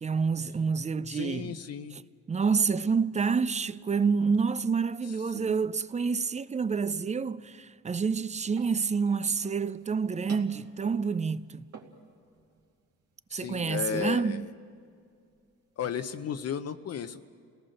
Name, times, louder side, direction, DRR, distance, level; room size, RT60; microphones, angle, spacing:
voice 1, 0.0-1.6 2.3-11.6 13.3-14.5, right 5 dB, 25° right, 0.5 m, -28 dB
voice 2, 1.1-2.0 5.3-5.6 13.3-14.5 15.8-17.2, left 8 dB, 55° left, 0.8 m, -34 dB
sound 1, 8.5-16.5, right 4 dB, 55° right, 2.6 m, -53 dB
29.5 x 18.0 x 6.5 m
cardioid pair, 90°, 30 cm